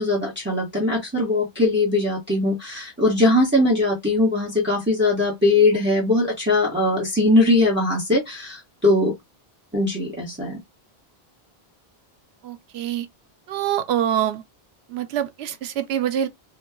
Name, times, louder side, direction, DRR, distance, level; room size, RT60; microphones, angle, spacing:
voice 1, 0.0-9.1 9.7-10.6, left 2 dB, 10° right, 1.0 m, -20 dB
voice 2, 12.4-13.1 13.5-14.4 14.9-16.3, right 10 dB, 85° right, 0.8 m, -25 dB
2.9 x 2.2 x 3.5 m
omnidirectional pair, 1.0 m